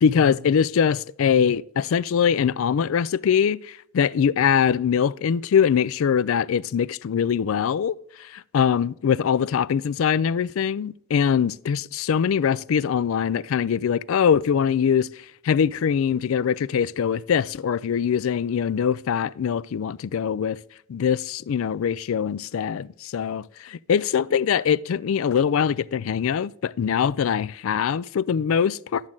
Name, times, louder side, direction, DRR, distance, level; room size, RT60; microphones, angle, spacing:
voice 1, 0.0-7.9 8.5-15.1 15.4-20.6 20.9-29.0, left 7 dB, 70° left, 0.3 m, -22 dB
11.5 x 7.3 x 3.8 m
head